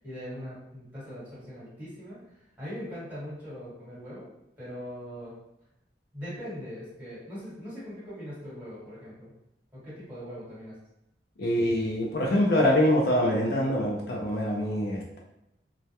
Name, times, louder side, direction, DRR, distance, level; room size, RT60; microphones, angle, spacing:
voice 1, 0.0-4.3 4.6-5.4 6.1-9.3 9.7-10.8, equal, 10° right, -10 dB, 1.2 m, -41 dB
voice 2, 11.4-15.2, left 1 dB, 60° left, -2 dB, 0.4 m, -24 dB
2.2 x 2.1 x 2.7 m, 0.86 s
head